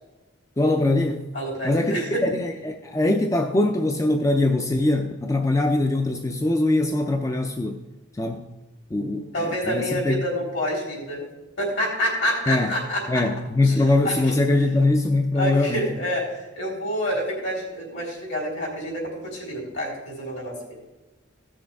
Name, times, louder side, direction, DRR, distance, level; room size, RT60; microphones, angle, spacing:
voice 1, 0.6-1.3 1.6-7.8 8.1-8.5 8.9-10.2 12.5-12.7 13.1-15.9, left 2 dB, 15° left, 4 dB, 0.4 m, -22 dB
voice 2, 1.3-2.2 9.0-11.2 11.6-13.2 13.6-13.7 14.0-14.2 15.4-20.6, equal, 60° left, -3 dB, 3.7 m, -28 dB
16.0 x 6.4 x 3.5 m, 1.1 s
head